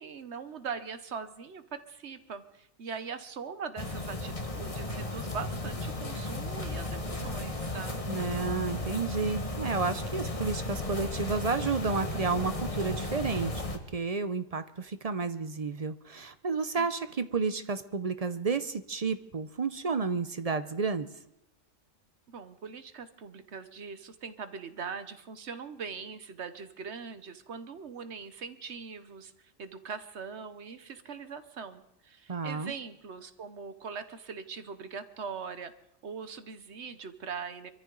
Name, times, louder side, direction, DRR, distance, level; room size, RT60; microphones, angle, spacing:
voice 1, 0.0-8.0 16.8-16.9 22.3-35.7 36.0-37.7, right 5 dB, 60° right, 11 dB, 1.1 m, -41 dB
sound 1, 3.8-13.8, left 2 dB, 25° left, 1.4 m, -35 dB
voice 2, 8.1-13.6 13.9-21.1 32.3-32.7, right 4 dB, 40° right, 11 dB, 0.6 m, -31 dB
24.5 x 14.0 x 3.9 m, 0.79 s
omnidirectional pair, 1.4 m